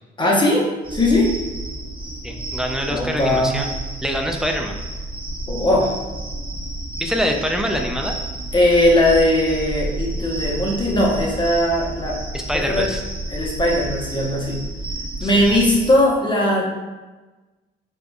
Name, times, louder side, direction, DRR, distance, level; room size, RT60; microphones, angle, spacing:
voice 1, 0.2-0.6 0.9-1.3 2.9-3.6 5.5-5.9 8.5-12.2 12.7-12.9 13.3-14.6 15.2-16.6, left 1 dB, 25° left, -3 dB, 1.0 m, -18 dB
sound 1, 0.8-15.9, right 2 dB, 25° right, 0.8 m, -31 dB
voice 2, 2.2-3.7 4.0-4.8 7.0-8.2 12.3-13.0 15.2-15.5, equal, 5° right, 2 dB, 0.4 m, -25 dB
4.8 x 2.5 x 2.3 m, 1.2 s
cardioid pair, 90°, 20 cm